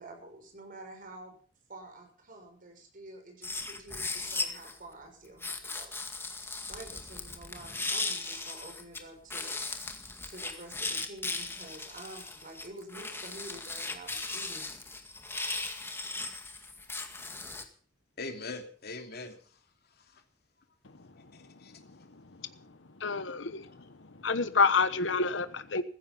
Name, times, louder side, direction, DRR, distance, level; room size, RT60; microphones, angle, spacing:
voice 1, 0.0-1.4 1.7-6.3 6.7-9.6 10.3-14.7, right 1 dB, 50° right, 3 dB, 6.7 m, -48 dB
sound 1, 3.4-4.8 5.4-9.0 9.3-17.6, left 3 dB, 15° left, 2.0 m, -37 dB
voice 2, 18.2-19.6 19.9-20.2 21.3-21.7, left 3 dB, 60° left, 5 dB, 3.0 m, -42 dB
voice 3, 23.0-23.7 24.2-25.8, left 4 dB, 85° left, 12 dB, 1.2 m, -27 dB
16.0 x 15.0 x 5.5 m, 0.43 s
head